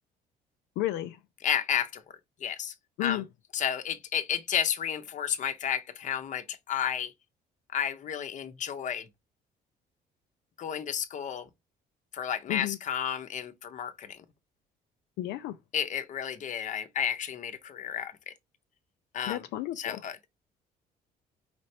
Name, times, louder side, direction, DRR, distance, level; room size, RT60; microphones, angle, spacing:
voice 1, 0.8-1.2 3.0-3.2 12.5-12.8 15.2-15.5 19.3-20.0, left 14 dB, 85° left, 0.4 m, -32 dB
voice 2, 1.4-2.0 2.4-2.7 3.0-3.2 3.5-7.1 7.7-9.1 10.6-11.5 12.1-14.2 15.7-18.3 19.1-19.5 19.8-20.3, left 9 dB, 45° left, 0.7 m, -32 dB
5.0 x 3.2 x 2.7 m
cardioid pair, 110°, 17 cm